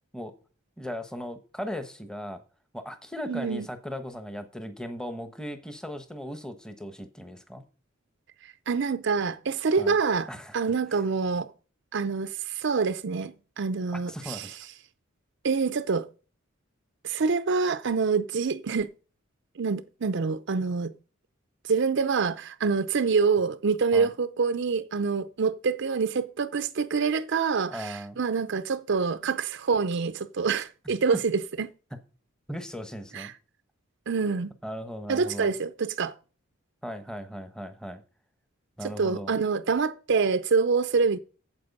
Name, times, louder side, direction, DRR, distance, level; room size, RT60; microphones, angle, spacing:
voice 1, 0.8-2.4 2.7-7.6 9.8-9.9 10.3-11.0 13.9-14.6 23.9-24.1 27.7-28.2 30.8-30.9 32.5-33.3 34.6-35.5 36.8-38.0 38.8-39.4, equal, 5° left, 1.0 m, -38 dB
voice 2, 3.3-3.7 8.4-10.3 10.5-11.5 11.9-14.5 15.4-16.1 17.0-18.9 19.6-20.9 21.6-31.7 33.1-33.3 34.1-34.5 35.1-36.1 38.8-41.2, right 5 dB, 60° right, 0.5 m, -26 dB
8.7 x 7.7 x 5.3 m
head